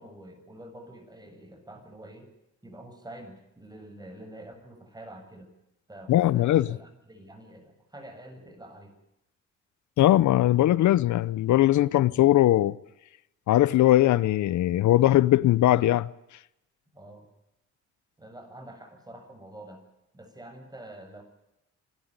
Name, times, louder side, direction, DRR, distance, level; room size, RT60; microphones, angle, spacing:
voice 1, 0.0-2.3 2.6-5.5 5.9-8.9 16.9-17.3 18.2-19.8 20.1-21.2, right 1 dB, 15° right, 7.3 m, -46 dB
voice 2, 6.1-6.7 10.0-12.7 13.5-16.1, left 14 dB, 70° left, 0.8 m, -20 dB
26.5 x 13.0 x 9.7 m
cardioid pair, 90°, 30 cm